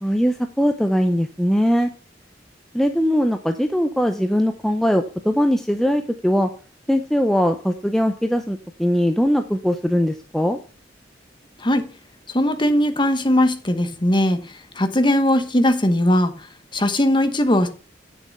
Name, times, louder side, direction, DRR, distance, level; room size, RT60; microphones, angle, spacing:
voice 1, 0.0-1.9 2.7-6.5 6.9-10.6, equal, ahead, 0.6 m, -20 dB
voice 2, 12.3-14.4 14.8-16.3 16.7-17.7, left 1 dB, 25° left, 1.1 m, -19 dB
8.9 x 6.8 x 5.3 m
head